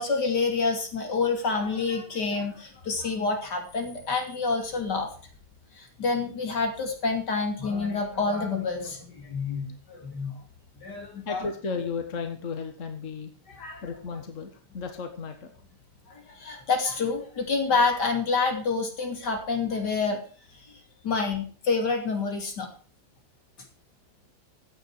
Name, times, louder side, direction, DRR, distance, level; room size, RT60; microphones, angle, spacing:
voice 1, 0.0-5.1 5.7-10.4 10.8-11.4 13.5-13.8 16.1-20.2 20.5-20.7 21.0-22.7, left 4 dB, 80° left, 3 dB, 3.5 m, -28 dB
voice 2, 11.3-13.3 13.8-15.5, left 5 dB, 50° left, 6 dB, 1.9 m, -34 dB
15.5 x 9.2 x 4.8 m, 0.41 s
omnidirectional pair, 1.8 m